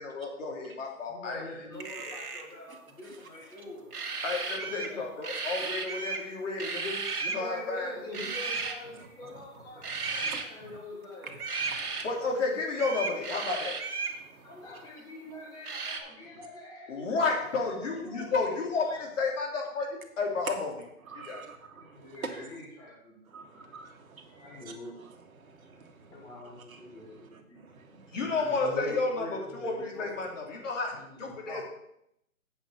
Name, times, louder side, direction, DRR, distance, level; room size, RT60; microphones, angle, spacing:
voice 1, 0.0-1.4 2.1-2.2 4.2-7.9 12.0-13.8 16.9-20.7 21.1-21.4 27.9-31.7, left 3 dB, 55° left, 0 dB, 3.1 m, -32 dB
voice 2, 1.1-3.9 4.6-5.1 7.2-9.9 10.1-11.4 14.4-19.0 21.7-23.7 24.3-25.0 26.1-27.6 28.2-30.1 31.0-31.7, left 2 dB, 10° left, -3 dB, 1.6 m, -44 dB
sound 1, 1.8-2.5 3.9-5.0 5.2-6.3 6.6-7.4 8.1-8.7 9.8-10.4 11.4-12.1 12.7-14.2 15.6-16.0, right 4 dB, 85° right, 2.0 m, -34 dB
voice 3, 9.0-9.4 9.8-10.7 11.6-12.1 14.2-14.9 21.1-22.5 23.3-24.6 25.3-28.2, right 4 dB, 70° right, 4 dB, 1.9 m, -48 dB
8.2 x 5.8 x 6.5 m, 0.76 s
hypercardioid pair, 155°, 44 cm